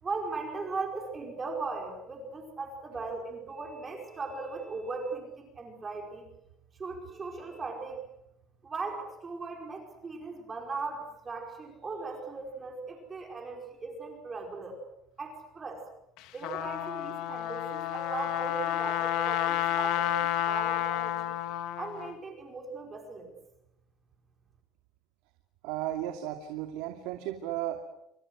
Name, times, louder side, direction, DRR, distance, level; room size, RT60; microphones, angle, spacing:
voice 1, 0.0-6.3 6.8-8.1 8.6-14.8 15.2-15.9 16.3-21.4 21.8-23.4, right 4 dB, 20° right, 3 dB, 5.0 m, -38 dB
Trumpet, 16.2-22.1, left 13 dB, 60° left, 2.0 m, -30 dB
voice 2, 25.6-27.8, right 12 dB, 85° right, 5 dB, 2.5 m, -34 dB
29.5 x 26.0 x 6.4 m, 0.84 s
cardioid pair, 165°, 0 cm